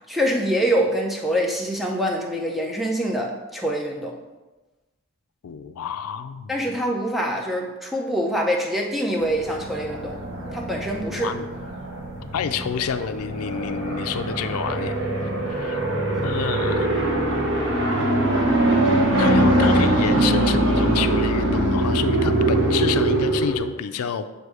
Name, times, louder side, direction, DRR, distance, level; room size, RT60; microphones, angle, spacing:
voice 1, 0.1-4.1 6.5-10.2 10.5-11.3 16.1-16.2, equal, ahead, -1 dB, 0.6 m, -25 dB
voice 2, 5.4-6.6 11.2-11.5 12.3-14.9 15.5-15.8 16.2-16.9 19.2-24.3, left 7 dB, 90° left, 10 dB, 0.4 m, -28 dB
sound 1, 9.2-23.6, right 1 dB, 60° right, 1.0 m, -22 dB
7.7 x 2.7 x 4.7 m, 1.2 s
head